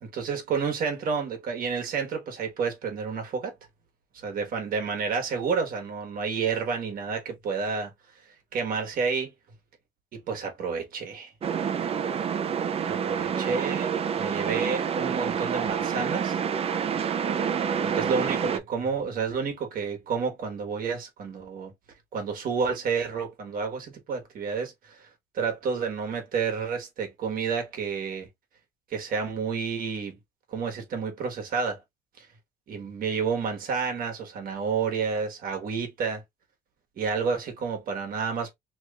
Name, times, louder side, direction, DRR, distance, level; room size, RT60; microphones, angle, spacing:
voice 1, 0.0-3.5 4.1-7.9 8.5-9.3 10.1-11.3 12.8-16.4 17.8-21.7 22.1-25.1 25.3-28.3 28.9-30.2 30.5-31.8 32.2-32.3 32.7-36.2 37.0-38.5, right 5 dB, 60° right, 1.2 m, -30 dB
sound 1, 11.4-18.6, right 7 dB, 35° right, 0.5 m, -28 dB
3.0 x 2.4 x 3.3 m
cardioid pair, 110°, 17 cm